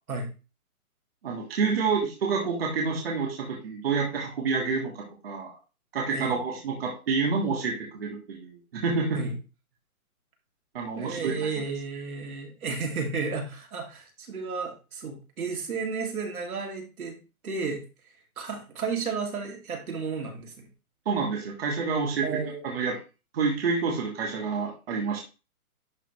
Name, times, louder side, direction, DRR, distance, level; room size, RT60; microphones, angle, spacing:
voice 1, 1.2-5.6 5.9-9.2 10.7-11.5 21.0-22.3 22.6-23.0 23.3-25.2, right 4 dB, 40° right, -1 dB, 1.7 m, -28 dB
voice 2, 10.9-17.2 17.4-17.8 18.4-20.7 22.2-22.7, right 4 dB, 70° right, 1 dB, 2.6 m, -33 dB
11.0 x 3.8 x 3.1 m, 0.31 s
hypercardioid pair, 175°, 44 cm